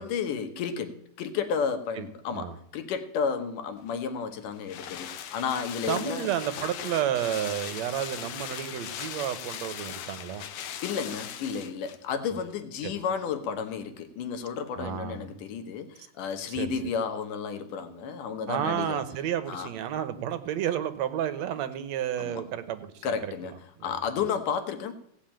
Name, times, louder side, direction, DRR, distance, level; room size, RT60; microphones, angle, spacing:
voice 1, 0.0-6.3 10.8-19.0 19.5-19.7 22.2-22.4 23.0-23.6 23.8-24.9, left 6 dB, 85° left, 8 dB, 2.8 m, -32 dB
sound 1, 3.9-12.1 12.4-12.5, left 9 dB, 70° left, 1.6 m, -39 dB
voice 2, 5.9-10.4 12.8-12.9 14.8-15.3 16.5-16.7 18.5-23.3 23.8-24.0, right 10 dB, 70° right, 11 dB, 1.9 m, -31 dB
17.0 x 5.8 x 8.8 m, 0.70 s
omnidirectional pair, 3.6 m